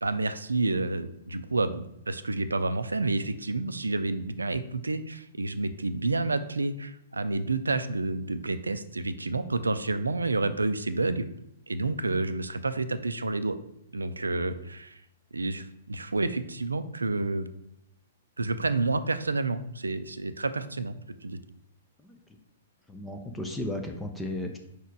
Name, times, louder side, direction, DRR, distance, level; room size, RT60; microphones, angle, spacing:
voice 1, 0.0-11.3 11.7-13.6 13.9-15.0 15.3-17.5 18.4-21.0 21.2-21.4, right 3 dB, 80° right, 11 dB, 0.4 m, -29 dB
voice 2, 22.9-24.6, left 1 dB, 10° left, 3 dB, 0.6 m, -34 dB
5.0 x 4.5 x 4.6 m, 0.80 s
figure-of-eight pair, 115°, 0 cm